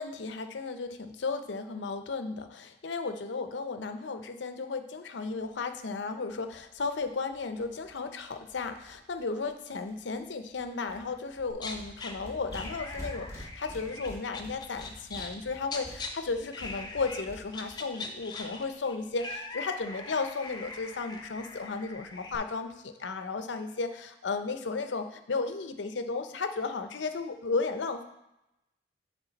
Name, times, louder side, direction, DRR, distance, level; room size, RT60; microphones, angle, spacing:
voice 1, 0.0-28.0, left 4 dB, 75° left, 8 dB, 0.6 m, -34 dB
sound 1, 5.4-5.5 5.7-5.8 6.0-6.1 6.3-9.5 9.9-10.2 10.5-17.7, equal, 15° right, 1.4 m, -48 dB
sound 2, 11.5-12.1 12.5-16.1 16.5-17.2 17.5-22.4, left 3 dB, 25° left, 0.5 m, -41 dB
8.3 x 3.7 x 4.0 m, 0.90 s
head